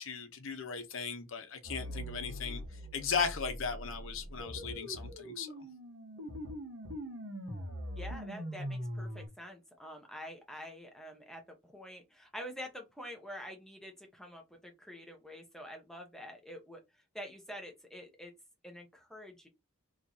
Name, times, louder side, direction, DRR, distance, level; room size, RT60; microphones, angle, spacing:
voice 1, 0.0-5.5, left 5 dB, 70° left, 0.8 m, -37 dB
sound 1, 1.6-9.3, equal, 75° right, 1.2 m, -42 dB
voice 2, 7.9-18.3 18.6-19.5, equal, ahead, 0.8 m, -47 dB
3.1 x 2.7 x 3.8 m
head